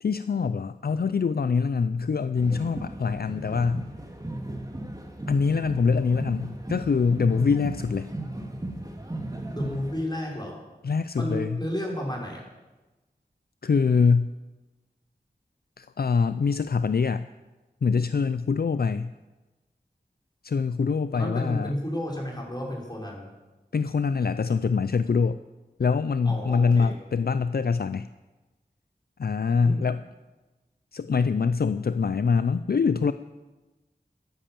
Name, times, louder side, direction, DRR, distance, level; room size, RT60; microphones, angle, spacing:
voice 1, 0.0-3.9 5.3-8.1 10.8-11.6 13.6-14.3 15.8-17.3 17.8-19.1 20.4-21.7 23.7-25.4 25.8-28.1 29.2-30.0 30.9-33.1, left 5 dB, 65° left, 13 dB, 0.4 m, -24 dB
sound 1, 2.3-10.0, right 1 dB, 20° right, 2.3 m, -36 dB
voice 2, 9.5-10.6 11.1-12.4 21.1-23.2 26.2-26.9 29.6-29.8, equal, 25° left, -2 dB, 4.9 m, -32 dB
13.5 x 10.5 x 7.6 m, 1.1 s
wide cardioid pair, 40°, 17 cm